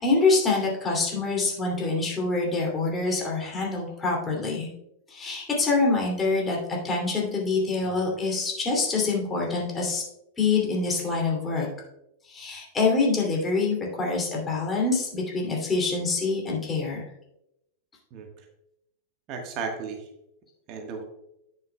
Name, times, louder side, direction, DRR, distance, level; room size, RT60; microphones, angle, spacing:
voice 1, 0.0-4.7 5.1-10.0 10.4-11.7 12.3-17.0, left 3 dB, 20° left, -2 dB, 2.6 m, -25 dB
voice 2, 18.1-18.5 19.3-20.1 20.7-21.0, right 5 dB, 40° right, 3 dB, 1.4 m, -35 dB
10.5 x 8.9 x 2.3 m, 0.82 s
figure-of-eight pair, 90°, 0 cm